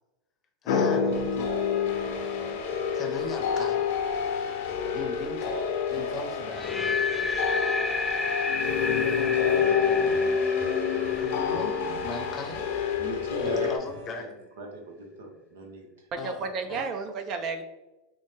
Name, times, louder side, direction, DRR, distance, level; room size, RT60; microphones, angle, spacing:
voice 1, 0.6-1.5 2.9-3.8 4.9-5.6 5.9-6.7 8.9-10.3 11.2-12.7 13.4-14.3 16.2-16.8, left 4 dB, 30° left, 3 dB, 0.7 m, -38 dB
sound 1, 0.7-13.8, left 6 dB, 70° left, 0.8 m, -27 dB
sound 2, 6.5-12.5, left 3 dB, 10° left, 0.3 m, -32 dB
sound 3, 9.2-14.2, right 1 dB, 65° right, 1.1 m, -43 dB
voice 2, 13.0-13.8 14.1-14.3 14.6-16.1 16.4-16.8, right 4 dB, 85° right, 2 dB, 0.8 m, -41 dB
voice 3, 16.1-17.6, right 4 dB, 45° right, 7 dB, 0.5 m, -32 dB
4.3 x 2.1 x 3.3 m, 1.0 s
hypercardioid pair, 110°, 0 cm